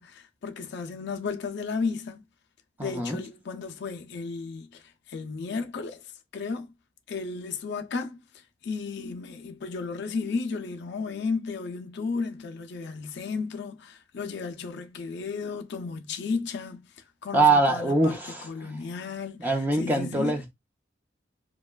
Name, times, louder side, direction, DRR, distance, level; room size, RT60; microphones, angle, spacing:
voice 1, 0.0-2.2 2.8-6.7 7.1-20.4, left 4 dB, 60° left, 0.4 m, -34 dB
voice 2, 2.8-3.2 17.3-18.5 19.4-20.5, right 2 dB, 10° right, 0.6 m, -23 dB
2.9 x 2.3 x 2.2 m
head